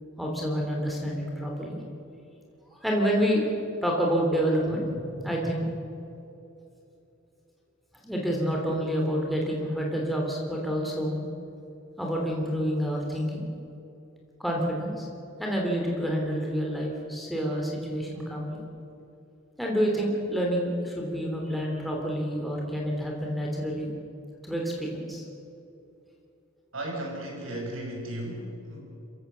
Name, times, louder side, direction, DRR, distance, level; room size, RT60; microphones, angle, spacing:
voice 1, 0.2-1.8 2.8-3.5 3.8-5.7 8.0-11.2 12.0-13.5 14.4-15.1 15.4-18.6 19.6-23.9 24.4-25.2, equal, ahead, -2 dB, 3.2 m, -28 dB
voice 2, 26.7-28.8, right 1 dB, 85° right, 0 dB, 6.7 m, -35 dB
26.5 x 16.0 x 6.9 m, 2.9 s
head